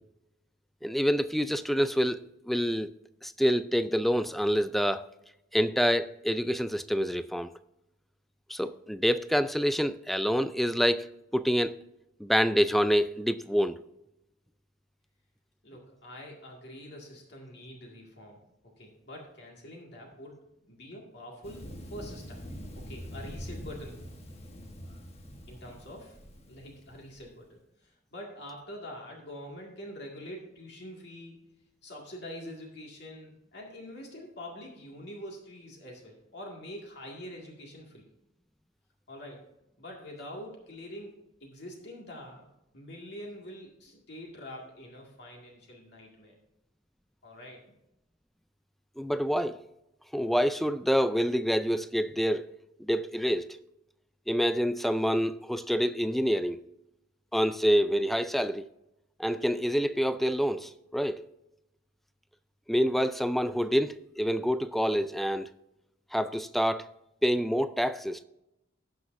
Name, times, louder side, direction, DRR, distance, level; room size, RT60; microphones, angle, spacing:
voice 1, 0.8-2.2 2.5-2.9 3.2-5.1 5.5-7.5 8.5-11.8 12.2-13.8 49.0-49.6 50.1-52.5 52.9-53.5 54.3-56.6 57.3-58.7 59.2-61.2 62.7-65.5 66.1-66.9 67.2-68.2, equal, ahead, 0.3 m, -27 dB
voice 2, 15.6-20.4 20.7-22.4 22.7-24.0 25.5-26.2 26.5-31.4 31.8-38.0 39.1-39.4 39.8-41.1 41.4-42.4 42.7-46.3 47.2-47.6, equal, 60° left, 2.0 m, -45 dB
Thunder, 21.4-27.3, equal, 30° left, 1.2 m, -44 dB
18.5 x 6.1 x 2.6 m
head